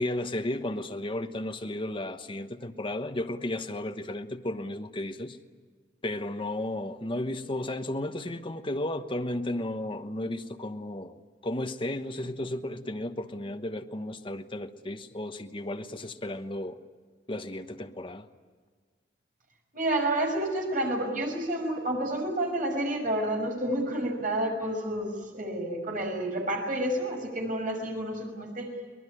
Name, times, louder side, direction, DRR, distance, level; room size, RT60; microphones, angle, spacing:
voice 1, 0.0-5.4 6.0-11.2 11.4-16.8 17.3-18.3, left 1 dB, 30° left, 1.1 m, -34 dB
voice 2, 19.7-28.7, right 1 dB, 50° right, 5.9 m, -30 dB
23.5 x 20.0 x 10.0 m
head